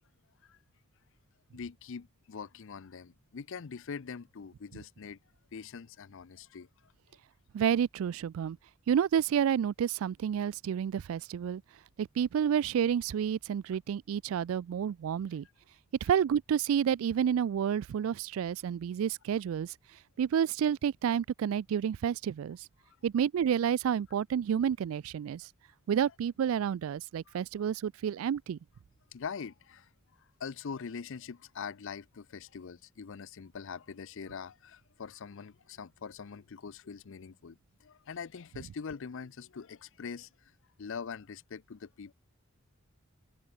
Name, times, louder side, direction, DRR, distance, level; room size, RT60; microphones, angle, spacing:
voice 1, 1.5-5.2 5.5-6.7 22.9-23.0 29.1-29.9 30.4-40.5 40.8-42.1, left 6 dB, 65° left, 0.5 m, -43 dB
voice 2, 7.5-8.6 8.9-11.6 12.0-15.5 16.0-19.7 20.2-22.7 23.0-25.5 25.9-28.6, right 8 dB, 75° right, 0.3 m, -30 dB
head